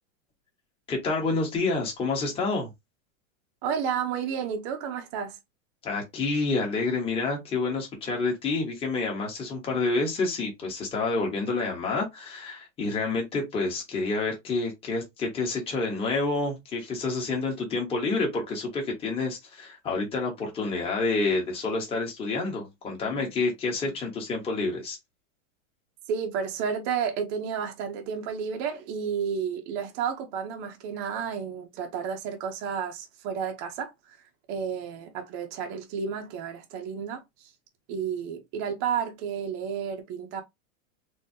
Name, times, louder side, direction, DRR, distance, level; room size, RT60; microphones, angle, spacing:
voice 1, 0.9-2.7 5.8-25.0, left 3 dB, 15° left, 1.1 m, -28 dB
voice 2, 3.6-5.4 26.1-34.2 34.5-37.5 37.9-40.4, right 7 dB, 30° right, 0.6 m, -31 dB
3.8 x 2.7 x 2.7 m
supercardioid pair, 165°, 40 cm